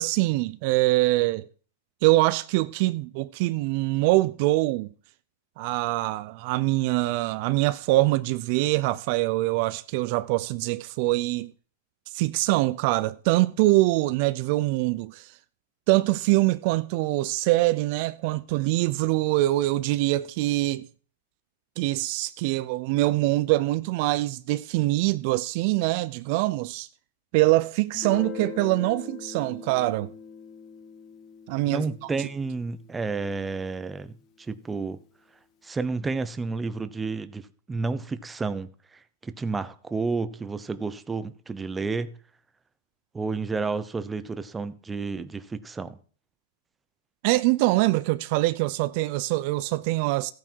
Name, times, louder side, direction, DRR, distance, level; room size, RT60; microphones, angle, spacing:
voice 1, 0.0-1.5 2.0-4.9 5.6-11.5 12.1-15.3 15.9-20.9 21.8-26.9 27.3-30.1 31.5-32.1 47.2-50.3, right 19 dB, 50° right, 0.5 m, -24 dB
Guitar, 27.9-33.4, left 7 dB, 35° left, 1.6 m, -42 dB
voice 2, 31.7-34.1 34.4-35.0 35.6-37.4 37.7-38.7 39.2-42.1 43.1-46.0, right 4 dB, 10° right, 0.8 m, -30 dB
14.5 x 9.1 x 4.6 m
hypercardioid pair, 140°, 0 cm